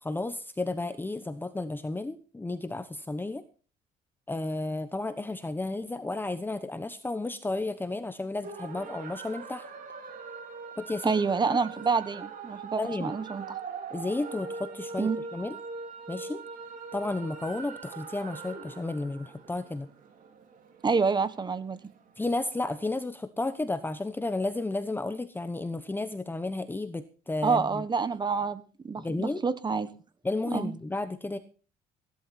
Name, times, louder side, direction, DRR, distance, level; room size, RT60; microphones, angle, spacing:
voice 1, 0.0-3.4 4.3-9.7 10.8-11.1 11.5-11.6 12.8-13.1 13.9-15.6 16.1-16.4 16.9-19.9 22.2-27.8 29.0-29.4 30.2-31.4, left 2 dB, 10° left, 10 dB, 1.0 m, -32 dB
sound 1, 8.4-22.9, right 4 dB, 55° right, 3.4 m, -42 dB
voice 2, 11.0-13.5 15.0-15.2 20.8-21.8 27.4-29.9 30.5-30.7, right 5 dB, 25° right, 14 dB, 1.3 m, -28 dB
16.5 x 11.5 x 4.3 m, 0.37 s
cardioid pair, 110°, 17 cm